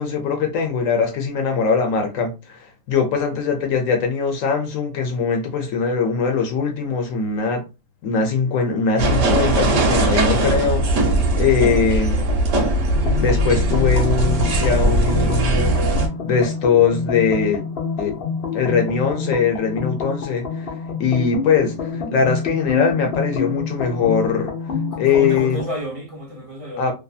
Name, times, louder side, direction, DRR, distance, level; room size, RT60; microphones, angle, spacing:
voice 1, 0.0-7.6 8.0-12.2 13.2-15.7 16.2-17.6 18.0-18.1 18.5-20.7 21.0-24.5 25.0-25.6 26.8-26.9, left 5 dB, 75° left, 1.1 m, -21 dB
sound 1, 9.0-16.1, right 1 dB, 70° right, 1.0 m, -19 dB
sound 2, 13.0-25.7, left 5 dB, 55° left, 0.8 m, -28 dB
voice 2, 24.9-26.9, equal, 40° right, 0.5 m, -31 dB
2.7 x 2.5 x 2.3 m
omnidirectional pair, 1.4 m